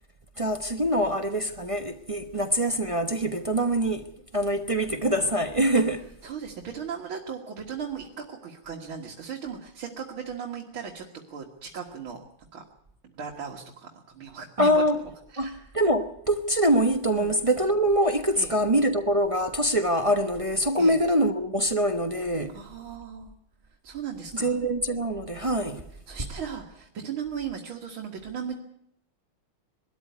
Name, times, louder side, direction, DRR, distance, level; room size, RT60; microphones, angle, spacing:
voice 1, 0.4-6.1 14.6-15.0 15.4-22.5 24.3-25.8, equal, 25° right, 0.7 m, -24 dB
voice 2, 6.2-12.2 12.5-12.6 13.0-14.8 15.3-15.6 17.1-17.4 18.3-18.5 20.7-21.0 22.5-23.3 23.8-24.6 26.1-28.6, right 7 dB, 75° right, 2.6 m, -37 dB
22.0 x 13.0 x 9.4 m
omnidirectional pair, 2.3 m